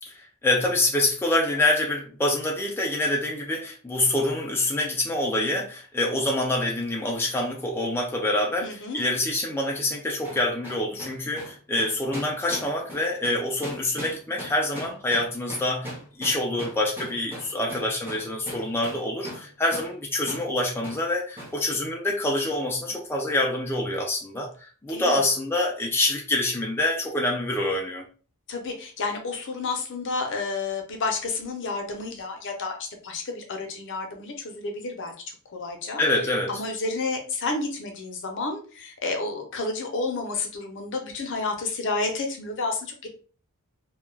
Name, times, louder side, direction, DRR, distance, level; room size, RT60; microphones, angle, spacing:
voice 1, 0.0-28.1 36.0-36.5, left 1 dB, 10° left, 0.3 m, -26 dB
voice 2, 8.6-9.0 22.9-23.0 24.9-25.2 28.5-43.1, left 3 dB, 55° left, 0.6 m, -31 dB
sound 1, 10.2-19.5 19.7-19.9 20.3-20.5 20.8-21.0 21.4-21.6, equal, 10° right, 0.7 m, -39 dB
2.2 x 2.2 x 3.1 m
head